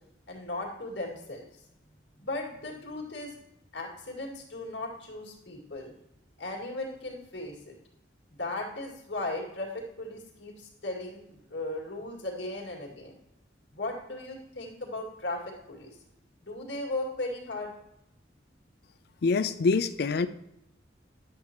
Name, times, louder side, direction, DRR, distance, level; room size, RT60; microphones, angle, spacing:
voice 1, 0.3-1.4 2.2-3.3 3.7-5.9 6.4-7.7 8.3-13.2 13.7-16.0 16.4-17.7, left 2 dB, 75° left, 2.2 m, -37 dB
voice 2, 19.2-20.3, left 4 dB, 60° left, 0.4 m, -25 dB
10.5 x 7.6 x 3.0 m
head